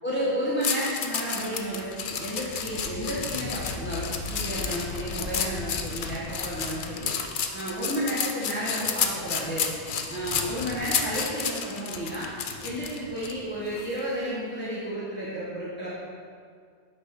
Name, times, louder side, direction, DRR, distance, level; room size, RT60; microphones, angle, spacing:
voice 1, 0.0-7.1 7.5-9.7 10.1-12.3 12.6-15.9, equal, 10° left, -9 dB, 1.1 m, -32 dB
sound 1, 0.6-13.3 13.8-14.0, left 7 dB, 55° left, 0.6 m, -31 dB
sound 2, 1.1-8.7 12.1-12.2 13.2-13.3, left 4 dB, 80° left, 0.9 m, -41 dB
sound 3, 2.5-14.2, left 1 dB, 35° left, 0.9 m, -46 dB
8.1 x 3.2 x 5.7 m, 2.1 s
omnidirectional pair, 1.2 m